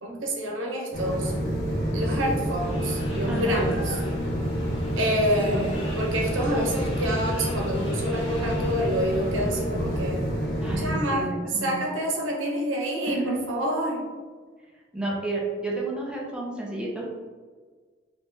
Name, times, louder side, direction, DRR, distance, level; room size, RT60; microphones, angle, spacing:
voice 1, 0.0-1.3 1.9-4.0 5.0-10.3 10.8-11.3 11.6-14.1, equal, 80° right, -1 dB, 0.8 m, -27 dB
sound 1, 0.9-10.9, equal, 55° left, 1.5 m, -28 dB
sound 2, 2.6-9.6, left 1 dB, 30° left, 0.8 m, -43 dB
voice 2, 3.3-3.8 5.7-5.8 10.6-11.8 13.1-13.4 14.9-17.2, right 2 dB, 5° right, -4 dB, 0.6 m, -31 dB
3.0 x 3.0 x 3.5 m, 1.5 s
head